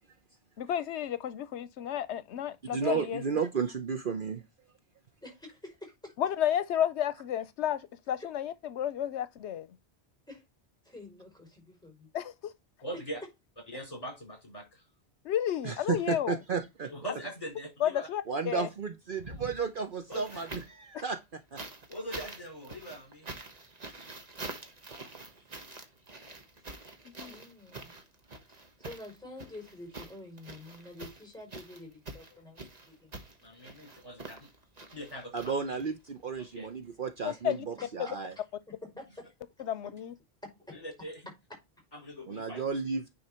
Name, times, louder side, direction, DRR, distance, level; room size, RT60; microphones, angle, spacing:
voice 1, 0.6-3.2 6.2-9.7 12.1-12.5 15.2-16.4 17.8-18.7 20.9-21.0 27.2-27.3 37.2-37.6 39.7-40.1, left 10 dB, 85° left, 0.9 m, -32 dB
voice 2, 2.7-4.4 15.6-16.9 18.3-21.6 35.3-38.3 42.3-43.0, right 5 dB, 55° right, 1.0 m, -33 dB
voice 3, 5.2-6.1 8.2-8.3 10.3-10.4 10.8-12.1 27.3-27.9 28.5-33.1 35.1-35.3 37.3-37.4 37.8-38.2 38.7-39.3 39.6-39.7 40.4-40.8, left 2 dB, 5° left, 5.5 m, -48 dB
voice 4, 12.8-13.2 13.7-14.8 16.9-18.1 20.1-20.4 21.9-23.3 33.4-34.5 34.9-35.3 35.7-35.8 36.4-36.7 40.7-41.2 41.9-42.6, right 1 dB, 35° left, 5.3 m, -41 dB
sound 1, 19.1-20.9 21.6-36.1 37.2-37.3, right 2 dB, 35° right, 1.4 m, -46 dB
9.6 x 4.5 x 4.3 m
omnidirectional pair, 1.1 m